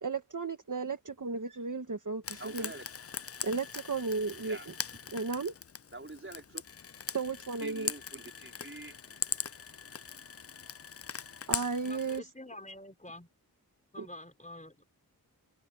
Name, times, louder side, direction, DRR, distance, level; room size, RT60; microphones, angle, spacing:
voice 1, 0.0-2.7 3.4-4.7 5.1-5.5 7.1-7.9 11.5-12.2 14.0-14.1, right 4 dB, 55° right, 1.6 m, -34 dB
Frying (food), 2.2-12.2, left 7 dB, 40° left, 0.5 m, -40 dB
voice 2, 2.4-2.9 4.4-4.7 5.0-5.1 5.9-6.6 7.6-9.0, right 2 dB, 35° right, 4.6 m, -46 dB
voice 3, 11.8-13.3 13.9-14.8, left 1 dB, 20° left, 4.8 m, -47 dB
wide cardioid pair, 70°, 38 cm